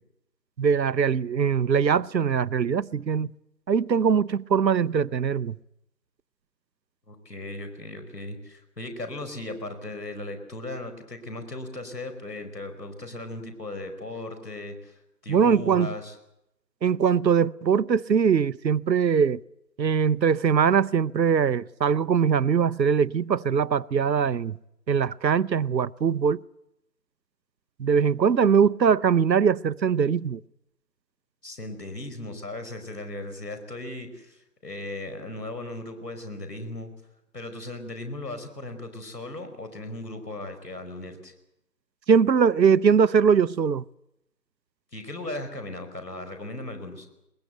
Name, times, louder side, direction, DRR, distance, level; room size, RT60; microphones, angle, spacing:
voice 1, 0.6-3.3 3.7-5.6 15.3-15.9 16.8-19.4 19.8-24.6 24.9-26.4 27.8-30.4 42.1-43.8, right 6 dB, 85° right, 0.7 m, -22 dB
voice 2, 7.1-16.1 31.4-36.9 37.3-41.3 44.9-47.1, left 2 dB, 70° left, 5.0 m, -37 dB
21.0 x 20.5 x 8.0 m
figure-of-eight pair, 160°, 50 cm